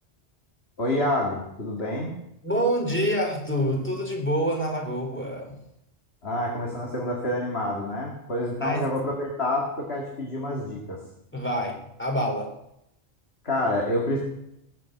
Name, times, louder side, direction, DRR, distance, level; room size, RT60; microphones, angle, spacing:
voice 1, 0.8-2.1 6.2-11.0 13.4-14.2, left 1 dB, 65° left, -1 dB, 2.5 m, -28 dB
voice 2, 2.4-5.5 8.6-8.8 11.3-12.5, equal, 10° left, 1 dB, 3.3 m, -26 dB
19.0 x 7.5 x 7.7 m, 0.83 s
omnidirectional pair, 1.2 m